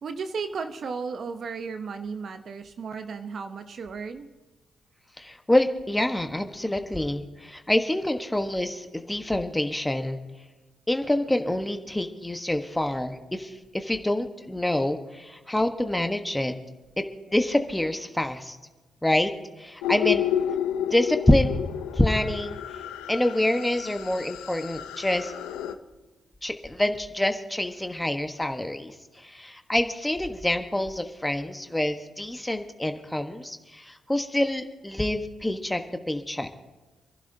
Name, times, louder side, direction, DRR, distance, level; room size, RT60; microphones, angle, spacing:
voice 1, 0.0-4.3, right 5 dB, 60° right, 8 dB, 0.9 m, -34 dB
voice 2, 5.2-10.2 10.9-16.5 17.0-18.6 19.0-19.3 19.6-20.2 20.8-21.5 21.9-22.6 23.1-25.3 26.4-36.5, left 1 dB, 10° left, 7 dB, 1.2 m, -26 dB
sound 1, 19.8-25.7, left 10 dB, 85° left, 0.7 m, -31 dB
28.0 x 11.5 x 2.8 m, 1.2 s
hypercardioid pair, 45°, 0 cm